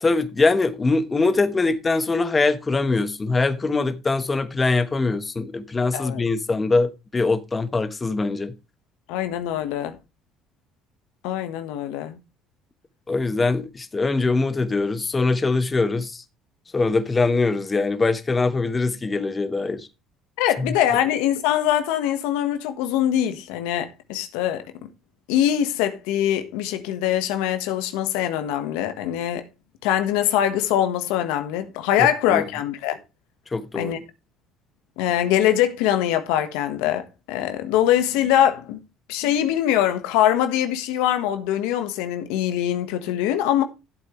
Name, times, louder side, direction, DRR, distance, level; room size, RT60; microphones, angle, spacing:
voice 1, 0.0-8.5 13.1-16.2 16.7-19.9 32.3-32.4 33.5-33.9, left 3 dB, 20° left, 1.2 m, -22 dB
voice 2, 9.1-10.0 11.2-12.2 20.4-24.7 25.3-29.4 29.8-33.0 33.7-34.0 35.0-38.8 39.1-43.6, left 11 dB, 85° left, 1.4 m, -23 dB
13.0 x 8.1 x 3.2 m
cardioid pair, 105°, 0 cm